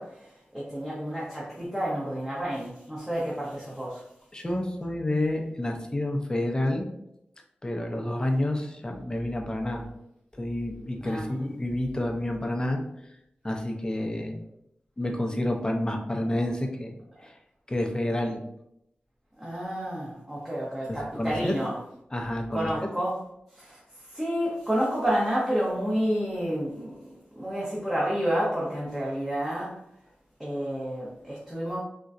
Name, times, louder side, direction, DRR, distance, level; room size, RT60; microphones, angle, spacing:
voice 1, 0.0-4.0 11.0-11.3 19.4-21.8 22.5-23.1 23.5-26.9 27.3-29.8 30.4-31.8, equal, 10° right, -7 dB, 0.8 m, -30 dB
voice 2, 4.3-6.9 7.6-9.9 10.3-12.8 13.4-14.4 15.0-17.0 17.2-17.4 17.7-18.4 20.9-21.5 22.1-22.9, left 1 dB, 20° left, 2 dB, 0.5 m, -29 dB
3.8 x 2.2 x 2.5 m, 0.79 s
wide cardioid pair, 70°, 4 cm